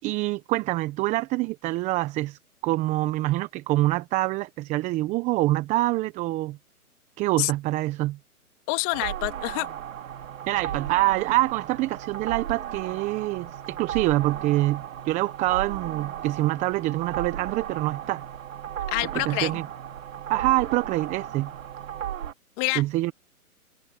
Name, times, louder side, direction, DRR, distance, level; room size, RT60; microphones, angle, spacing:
voice 1, 0.0-6.6 7.2-8.2 10.5-18.2 19.1-19.7 20.3-21.5 22.7-23.1, right 18 dB, 15° right, 0.9 m, -25 dB
voice 2, 8.7-9.7 18.9-19.5 22.6-22.8, left 29 dB, 30° left, 2.8 m, -27 dB
sound 1, 8.9-22.3, right 10 dB, 60° right, 3.6 m, -35 dB
hypercardioid pair, 140°, 45 cm